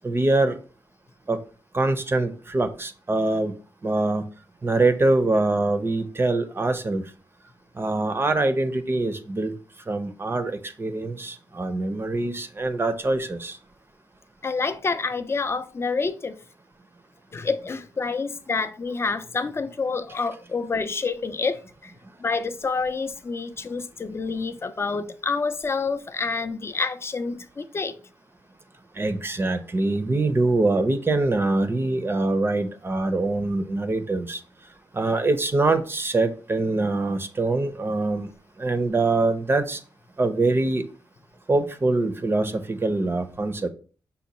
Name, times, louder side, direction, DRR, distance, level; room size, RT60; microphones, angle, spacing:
voice 1, 0.0-0.6 1.3-1.4 1.7-3.5 3.8-4.2 4.6-7.0 7.8-9.5 9.9-13.6 29.0-34.4 34.9-38.3 38.6-39.8 40.2-40.8 41.5-43.7, right 2 dB, 30° right, 0.6 m, -24 dB
voice 2, 14.4-16.4 17.3-21.9 22.2-28.0, left 4 dB, 30° left, 0.4 m, -28 dB
5.3 x 2.2 x 4.1 m
cardioid pair, 75°, 8 cm